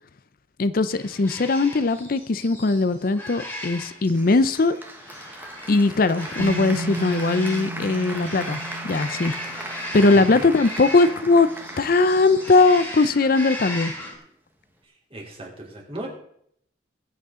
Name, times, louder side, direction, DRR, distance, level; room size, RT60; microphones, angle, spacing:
voice 1, 0.6-4.8 5.7-9.3 9.9-11.5 11.8-13.9, left 3 dB, 55° left, 13 dB, 0.5 m, -20 dB
sound 1, 0.9-14.1, left 1 dB, 10° left, 2.6 m, -37 dB
Applause, 4.1-13.2, right 1 dB, 10° right, 1.2 m, -38 dB
Bass guitar, 6.4-12.4, right 1 dB, 60° right, 1.0 m, -36 dB
voice 2, 10.1-10.4 15.1-16.1, right 1 dB, 35° right, -2 dB, 3.3 m, -37 dB
21.5 x 8.2 x 3.7 m, 0.70 s
head